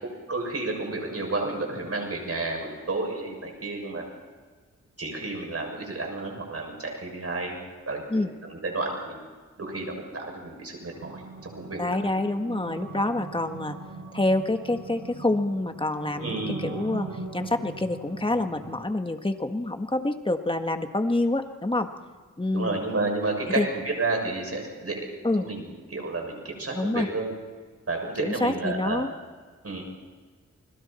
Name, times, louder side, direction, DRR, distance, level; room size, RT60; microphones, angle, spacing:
voice 1, 0.0-4.0 5.0-7.6 7.9-9.2 9.6-12.0 16.2-16.6 22.5-27.3 27.9-29.1 29.6-29.8, right 3 dB, 50° right, 1 dB, 7.0 m, -31 dB
sound 1, 10.9-18.8, right 3 dB, 65° right, 7.8 m, -40 dB
voice 2, 11.8-13.8 14.1-17.1 17.3-21.9 22.4-22.8 23.6-23.7 25.2-25.5 26.7-27.1 28.2-29.1, left 2 dB, 15° left, 6 dB, 1.6 m, -27 dB
30.0 x 21.5 x 4.4 m, 1.5 s
wide cardioid pair, 80°, 30 cm